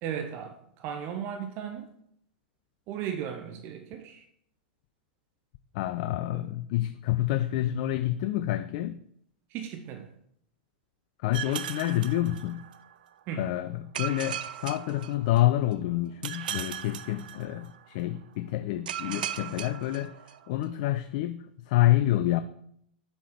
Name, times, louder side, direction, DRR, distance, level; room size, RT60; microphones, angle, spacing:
voice 1, 0.0-1.9 2.9-4.2 9.5-10.1 13.3-13.5, right 8 dB, 40° right, 0.7 m, -36 dB
voice 2, 5.7-9.0 11.2-12.7 13.4-20.1 20.5-22.4, left 14 dB, 50° left, 0.3 m, -28 dB
sound 1, 11.3-12.9 13.9-15.7 16.2-17.9 18.9-20.6, right 10 dB, 65° right, 0.4 m, -37 dB
7.1 x 4.6 x 4.2 m
figure-of-eight pair, 95°, 5 cm